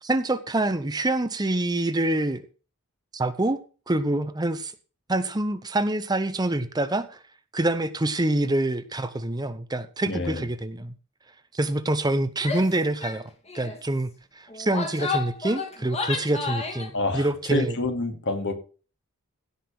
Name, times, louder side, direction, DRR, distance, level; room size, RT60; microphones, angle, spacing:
voice 1, 0.0-2.4 3.1-4.7 5.1-7.2 7.5-10.9 11.5-17.8, right 1 dB, 20° right, 0.8 m, -26 dB
voice 2, 10.1-10.4 16.9-18.5, left 2 dB, 55° left, 2.8 m, -27 dB
Female speech woman speaking / Yell, 12.4-12.7 13.0-13.2 13.5-13.8 14.5-16.9, left 4 dB, 30° left, 2.4 m, -31 dB
16.5 x 5.7 x 6.1 m
head